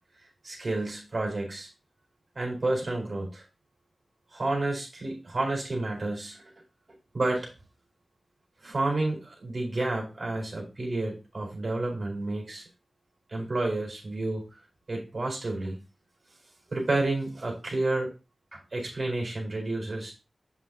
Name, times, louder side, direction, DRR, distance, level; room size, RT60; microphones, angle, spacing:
voice 1, 0.4-1.7 2.3-3.4 4.3-6.4 7.1-7.5 8.6-12.6 13.3-14.4 14.9-15.8 16.7-18.1 18.5-20.1, right 2 dB, 45° right, 0 dB, 4.4 m, -30 dB
8.3 x 7.4 x 2.8 m, 0.29 s
wide cardioid pair, 100°, 0 cm